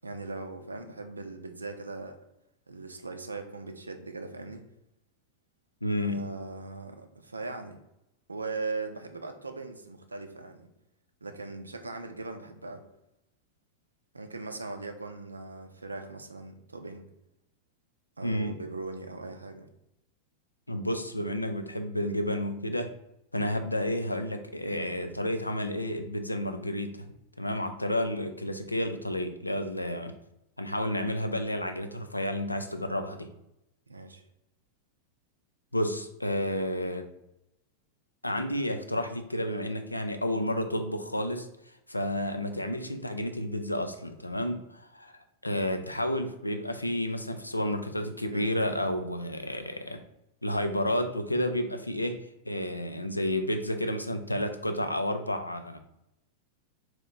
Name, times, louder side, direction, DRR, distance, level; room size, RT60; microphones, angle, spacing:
voice 1, 0.0-2.2 2.7-4.6 6.0-7.8 8.3-10.7 11.2-12.8 14.1-17.1 18.2-19.7 33.9-34.2 42.1-42.3 48.3-48.8, right 3 dB, 80° right, 6 dB, 0.5 m, -39 dB
voice 2, 5.8-6.3 18.2-18.6 20.7-22.9 23.3-27.1 27.4-30.1 30.6-33.3 35.7-37.1 38.2-41.5 41.9-45.1 45.4-50.0 50.4-52.2 52.5-55.8, left 1 dB, 85° left, 7 dB, 0.4 m, -31 dB
3.6 x 2.9 x 4.1 m, 0.84 s
figure-of-eight pair, 90°, 0 cm